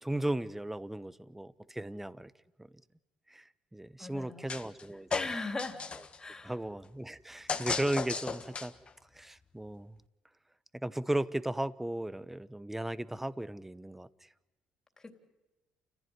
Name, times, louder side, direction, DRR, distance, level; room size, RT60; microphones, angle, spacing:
voice 1, 0.0-2.3 2.6-2.7 3.3-5.1 6.4-8.7 9.1-10.0 10.8-14.1, right 1 dB, 10° right, 16 dB, 0.9 m, -36 dB
voice 2, 4.0-4.5 5.1-5.8 6.2-6.5 15.0-15.1, left 3 dB, 20° left, 4 dB, 3.4 m, -38 dB
sound 1, 4.5-4.8 5.1-6.2 7.5-8.9, left 5 dB, 35° left, 1.5 m, -35 dB
29.0 x 15.5 x 9.7 m, 1.1 s
supercardioid pair, 70°, 3 cm